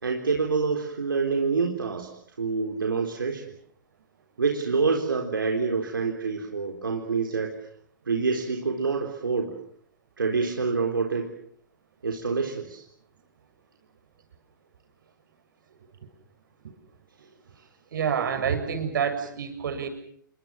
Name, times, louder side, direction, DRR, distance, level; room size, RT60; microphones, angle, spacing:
voice 1, 0.0-2.1 2.4-3.4 4.4-7.7 8.1-9.6 10.2-11.3 12.0-12.8 17.6-17.7, right 4 dB, 85° right, 1 dB, 4.1 m, -27 dB
voice 2, 17.9-19.9, right 7 dB, 70° right, 7 dB, 7.5 m, -27 dB
29.5 x 23.5 x 7.4 m, 0.65 s
hypercardioid pair, 115°, 11 cm